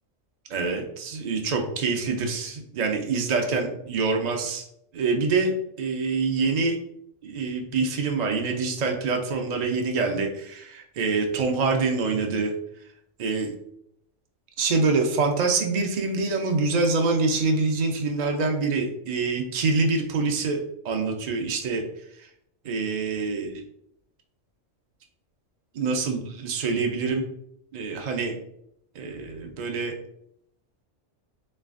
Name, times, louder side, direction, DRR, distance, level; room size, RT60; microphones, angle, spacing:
voice 1, 0.5-4.6 4.9-6.8 7.2-12.5 13.2-13.5 14.6-20.6 20.8-21.8 22.6-23.6 25.7-27.2 27.7-28.3 29.0-29.9, right 4 dB, 70° right, 3 dB, 0.4 m, -25 dB
4.4 x 3.3 x 2.4 m, 0.74 s
omnidirectional pair, 1.4 m